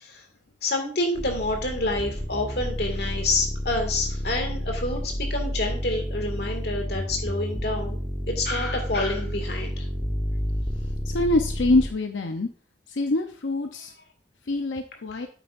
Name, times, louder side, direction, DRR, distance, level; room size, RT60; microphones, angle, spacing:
voice 1, 0.6-8.0 8.3-9.8, left 2 dB, 60° left, 3 dB, 2.1 m, -28 dB
sound 1, 1.2-11.9, equal, 15° left, 1.0 m, -30 dB
voice 2, 11.1-12.5 12.9-13.9 14.5-15.3, left 2 dB, 90° left, 5 dB, 0.7 m, -24 dB
9.2 x 8.0 x 2.5 m, 0.42 s
head